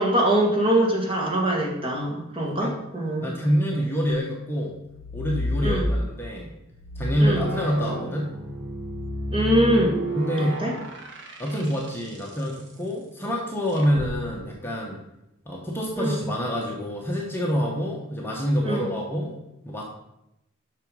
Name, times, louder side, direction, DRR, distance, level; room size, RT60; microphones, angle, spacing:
voice 1, 0.0-3.3 5.6-5.9 7.2-7.4 9.3-9.9 10.4-10.7 16.0-16.2 18.6-18.9, right 1 dB, 25° right, -2 dB, 2.0 m, -23 dB
voice 2, 2.4-2.8 3.2-4.8 5.1-6.5 7.0-8.3 10.2-10.6 11.4-15.0 15.5-19.3 19.6-19.8, equal, 10° left, -2 dB, 1.1 m, -26 dB
sound 1, 4.8-6.3 6.7-12.2 13.8-14.1, equal, 60° right, 1.4 m, -30 dB
7.9 x 6.0 x 5.4 m, 0.88 s
head